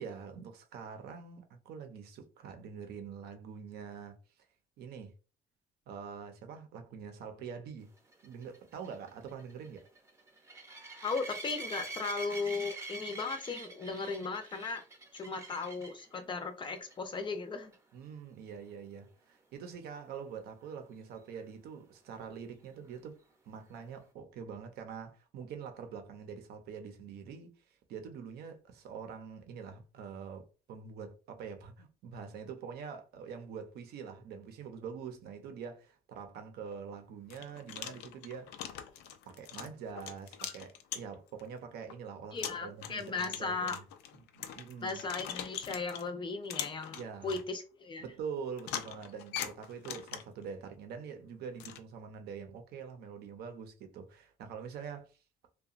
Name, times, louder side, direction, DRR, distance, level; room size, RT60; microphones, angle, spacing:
voice 1, 0.0-4.2 4.8-5.1 5.9-7.9 8.2-9.9 17.9-23.2 23.5-38.8 39.3-43.8 44.3-45.0 46.9-47.4 48.0-55.1, right 6 dB, 70° right, 0.6 m, -45 dB
sound 1, 8.1-16.1 16.6-16.9 17.2-17.3 17.7-17.8 21.4-21.5, right 3 dB, 15° right, 0.6 m, -45 dB
voice 2, 11.0-14.8 15.1-17.7 42.3-43.8 44.8-48.0, left 4 dB, 30° left, 0.5 m, -37 dB
sound 2, 36.6-36.7 37.3-41.4 41.9-42.0 42.4-46.1 46.5-47.4 48.6-50.4 51.6-51.8, left 10 dB, 85° left, 0.4 m, -42 dB
2.8 x 2.2 x 2.4 m
cardioid pair, 110°, 17 cm